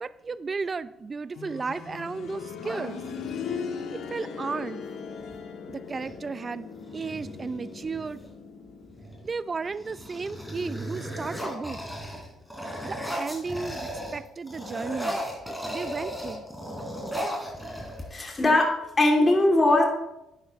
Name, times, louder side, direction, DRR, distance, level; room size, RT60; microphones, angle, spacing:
voice 1, 0.0-3.0 3.9-4.9 5.7-6.7 6.9-8.2 9.2-11.8 12.8-15.2 15.7-16.4, right 4 dB, 35° right, 15 dB, 0.5 m, -34 dB
sound 1, 1.3-12.1 12.4-12.5 13.4-13.5, left 6 dB, 70° left, 1.3 m, -40 dB
sound 2, 2.6-3.5 5.2-5.4 5.7-6.2 6.7-8.3 8.9-9.3 9.6-14.2 14.5-18.4, equal, ahead, 3.5 m, -36 dB
voice 2, 18.1-18.7 19.0-19.8, left 2 dB, 25° left, 0 dB, 2.8 m, -20 dB
11.5 x 9.7 x 3.2 m, 0.88 s
supercardioid pair, 70°, 0 cm